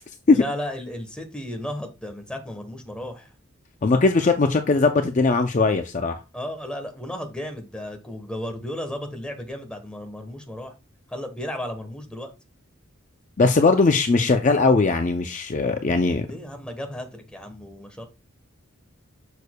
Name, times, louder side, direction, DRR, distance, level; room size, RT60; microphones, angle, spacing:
voice 1, 0.3-3.3 6.3-10.7 11.1-12.3 16.2-18.0, left 1 dB, 5° left, 4 dB, 1.1 m, -34 dB
voice 2, 3.8-6.2 13.4-16.3, left 3 dB, 35° left, 7 dB, 0.4 m, -19 dB
6.7 x 6.4 x 2.2 m, 0.28 s
head